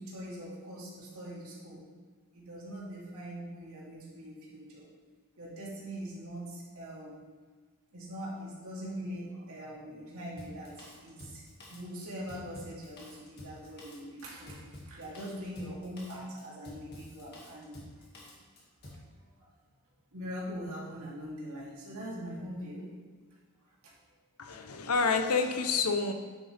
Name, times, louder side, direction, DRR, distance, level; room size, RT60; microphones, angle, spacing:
voice 1, 0.0-1.8 2.3-4.9 5.4-7.2 7.9-11.4 11.7-14.6 14.9-17.8 18.9-19.0 20.1-22.9 23.8-23.9, equal, 70° right, -6 dB, 2.9 m, -42 dB
Drum kit, 10.4-19.1, left 1 dB, 50° left, 2.1 m, -50 dB
voice 2, 24.4-26.1, left 4 dB, 85° left, 6 dB, 0.8 m, -28 dB
9.4 x 7.6 x 3.4 m, 1.5 s
head